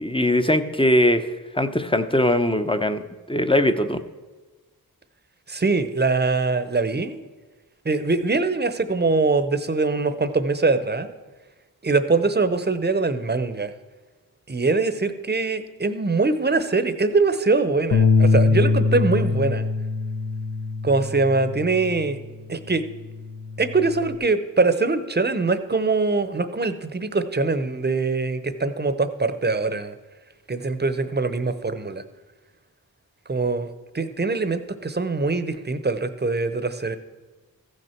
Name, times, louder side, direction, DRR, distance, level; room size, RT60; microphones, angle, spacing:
voice 1, 0.0-3.0 3.3-4.0, left 1 dB, 15° left, 9 dB, 0.7 m, -21 dB
voice 2, 5.5-7.2 7.8-11.1 11.8-13.7 14.5-19.7 20.8-22.2 22.5-22.8 23.6-29.9 30.5-32.0 33.3-33.7 33.9-37.0, right 3 dB, 30° right, 11 dB, 0.8 m, -23 dB
Bass guitar, 17.9-22.4 22.8-24.2, left 4 dB, 75° left, 0.7 m, -23 dB
14.5 x 6.5 x 4.5 m, 1.3 s
cardioid pair, 50°, 37 cm